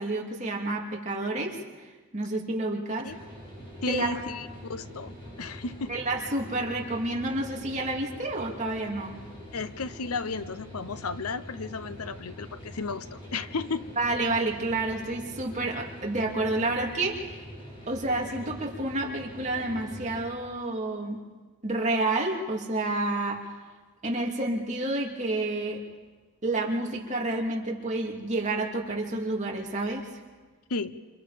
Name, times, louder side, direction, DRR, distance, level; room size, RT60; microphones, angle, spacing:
voice 1, 0.0-1.6 2.1-3.1 3.9-4.2 5.9-9.2 14.0-17.4 17.9-21.2 21.6-23.5 24.0-25.8 26.4-30.1, right 2 dB, 35° right, -1 dB, 2.8 m, -29 dB
sound 1, 3.0-20.2, equal, 25° left, 6.0 m, -44 dB
voice 2, 3.8-6.0 9.5-13.9 30.7-31.0, left 4 dB, 85° left, 13 dB, 0.9 m, -34 dB
28.5 x 26.5 x 5.2 m, 1.4 s
head